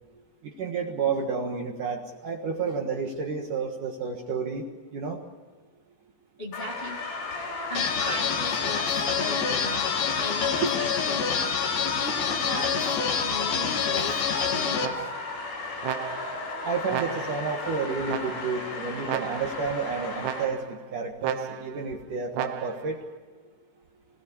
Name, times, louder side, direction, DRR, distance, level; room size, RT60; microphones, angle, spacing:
voice 1, 0.4-4.7 4.9-5.2 10.6-10.7 16.6-23.0, right 5 dB, 60° right, 1 dB, 2.7 m, -30 dB
voice 2, 6.4-7.0 7.7-11.5 12.0-15.0, equal, 30° left, 0 dB, 1.0 m, -38 dB
sound 1, 6.5-20.4, left 3 dB, 80° left, 7.4 m, -35 dB
sound 2, 7.7-14.9, left 7 dB, 55° left, 2.4 m, -27 dB
sound 3, 14.8-15.4 15.8-16.5 16.9-17.5 18.1-18.7 19.1-19.7 20.2-20.8 21.2-21.8 22.3-22.9, right 11 dB, 80° right, 2.9 m, -35 dB
26.0 x 17.5 x 8.6 m, 1.5 s
omnidirectional pair, 4.9 m